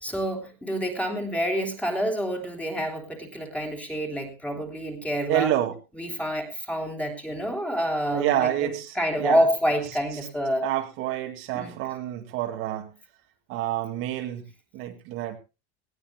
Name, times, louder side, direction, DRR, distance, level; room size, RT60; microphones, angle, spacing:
voice 1, 0.0-5.5 6.0-8.7 8.9-10.6 11.5-11.7, equal, 5° left, 3 dB, 3.3 m, -27 dB
voice 2, 5.3-5.8 8.1-9.4 10.6-12.9 13.5-14.5 14.7-15.4, right 13 dB, 45° right, 4 dB, 2.1 m, -28 dB
19.0 x 16.5 x 2.3 m, 0.29 s
supercardioid pair, 155°, 30 cm